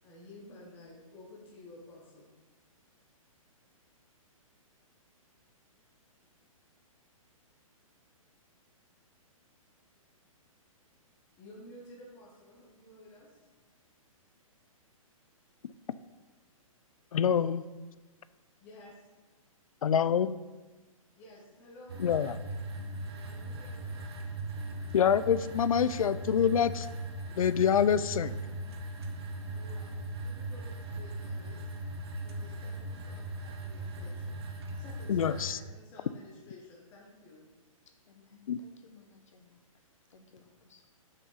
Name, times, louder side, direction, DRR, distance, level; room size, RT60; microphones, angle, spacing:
voice 1, 0.0-2.3 11.4-13.4 18.6-19.1 21.1-22.2 23.2-24.1 29.5-31.7 32.2-34.4 34.7-35.4 35.7-37.5, left 1 dB, 10° left, -4 dB, 1.2 m, -53 dB
voice 2, 17.1-17.6 19.8-20.3 22.0-22.3 24.9-26.9 27.3-28.4 35.1-35.6 38.5-38.6, left 8 dB, 75° left, 15 dB, 0.5 m, -26 dB
sound 1, 21.9-35.5, right 1 dB, 45° right, 1.2 m, -39 dB
voice 3, 38.1-39.6 40.1-40.8, left 5 dB, 60° left, 5 dB, 1.5 m, -59 dB
7.9 x 6.7 x 5.7 m, 1.2 s
hypercardioid pair, 180°, 18 cm